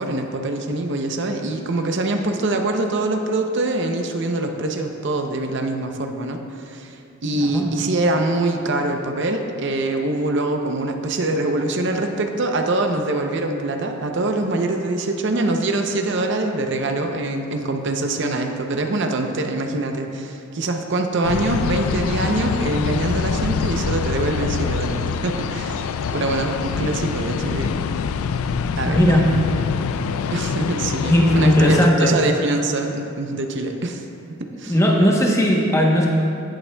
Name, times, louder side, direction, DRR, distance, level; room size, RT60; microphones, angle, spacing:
voice 1, 0.0-27.7 28.8-29.2 30.3-34.0 34.4-34.8, right 2 dB, 55° right, 4 dB, 0.6 m, -24 dB
sound 1, 21.2-31.9, left 6 dB, 80° left, 0.3 m, -25 dB
voice 2, 28.8-29.2 31.1-32.2 34.7-36.1, equal, 15° left, -1 dB, 0.9 m, -17 dB
16.5 x 7.0 x 2.2 m, 2.6 s
head